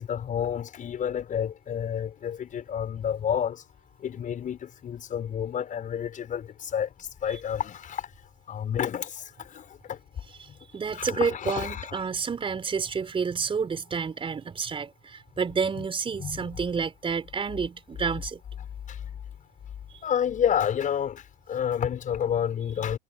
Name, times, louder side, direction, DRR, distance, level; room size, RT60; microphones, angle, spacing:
voice 1, 0.0-3.6 4.0-8.1 8.5-10.0 10.9-12.0 15.8-15.9 16.2-16.4 18.9-19.0 20.0-23.0, left 9 dB, 25° left, 5.8 m, -30 dB
voice 2, 10.4-18.4 19.9-20.0, right 5 dB, 15° right, 4.4 m, -30 dB
figure-of-eight pair, 90°, 30 cm